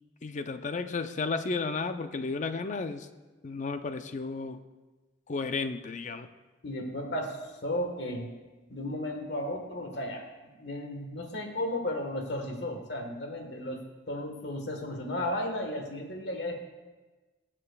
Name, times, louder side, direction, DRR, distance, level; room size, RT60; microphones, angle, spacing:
voice 1, 0.2-3.1 3.4-4.6 5.3-6.3, left 4 dB, 40° left, 9 dB, 0.5 m, -33 dB
voice 2, 6.6-8.3 8.7-10.2 10.5-16.6, left 1 dB, 60° left, 3 dB, 1.4 m, -34 dB
20.5 x 7.6 x 2.3 m, 1.2 s
head